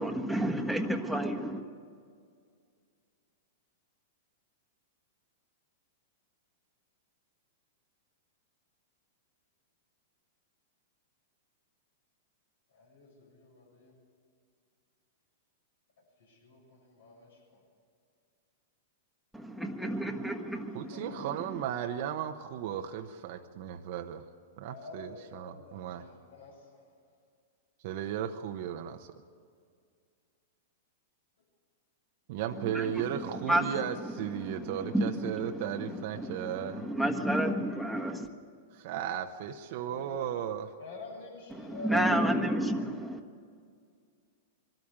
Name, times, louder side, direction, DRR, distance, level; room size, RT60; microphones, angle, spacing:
voice 1, 0.0-1.6 19.3-21.4 32.6-33.8 34.3-38.3 41.5-43.2, right 1 dB, ahead, 5 dB, 1.5 m, -31 dB
voice 2, 12.7-13.9 16.3-17.6 20.9-21.0 24.6-26.5 39.8-40.3 40.8-42.3, left 2 dB, 80° left, 0 dB, 7.2 m, -46 dB
voice 3, 20.7-24.2 24.6-26.0 27.8-29.1 32.3-36.8 38.7-40.7, right 9 dB, 55° right, 6 dB, 0.9 m, -35 dB
22.5 x 13.0 x 9.9 m, 2.2 s
hypercardioid pair, 115°, 0 cm